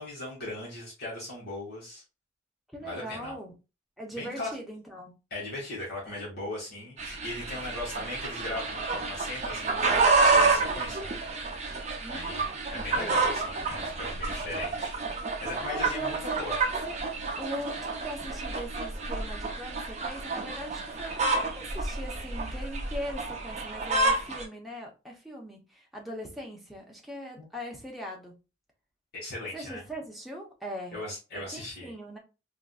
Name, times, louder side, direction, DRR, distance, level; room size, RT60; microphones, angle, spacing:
voice 1, 0.0-2.0 2.8-3.3 4.2-4.5 5.3-10.0 10.3-11.1 12.1-14.9 15.4-16.6 27.4-27.5 29.1-29.8 30.9-31.9, left 2 dB, 55° left, 1.6 m, -38 dB
voice 2, 2.7-3.5 4.0-5.1 12.0-13.2 15.6-17.0 17.4-28.3 29.5-31.0 31.3-32.2, right 1 dB, ahead, 0.8 m, -40 dB
sound 1, 7.0-24.4, right 3 dB, 35° right, 0.6 m, -29 dB
3.6 x 2.6 x 2.3 m
head